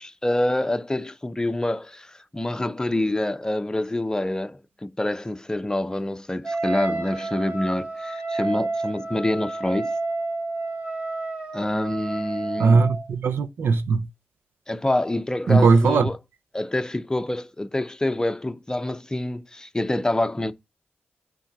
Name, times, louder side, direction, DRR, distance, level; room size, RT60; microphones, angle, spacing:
voice 1, 0.0-9.9 11.5-12.9 14.7-16.2 16.5-20.5, left 1 dB, 20° left, 0.7 m, -26 dB
Wind instrument woodwind instrument, 6.4-13.1, right 3 dB, 30° right, 3.2 m, -30 dB
voice 2, 12.6-14.1 15.5-16.1, right 4 dB, 90° right, 0.6 m, -18 dB
8.7 x 3.7 x 5.9 m
wide cardioid pair, 75°, 4 cm